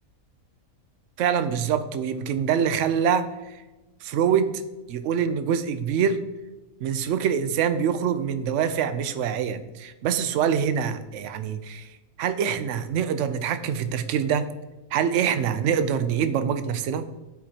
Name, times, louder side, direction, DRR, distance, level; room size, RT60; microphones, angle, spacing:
voice 1, 1.2-3.6 4.0-4.5 4.9-6.2 6.8-11.9 12.2-14.5 14.9-17.1, right 8 dB, 65° right, 11 dB, 0.8 m, -25 dB
11.5 x 4.8 x 2.9 m, 1.1 s
omnidirectional pair, 1.6 m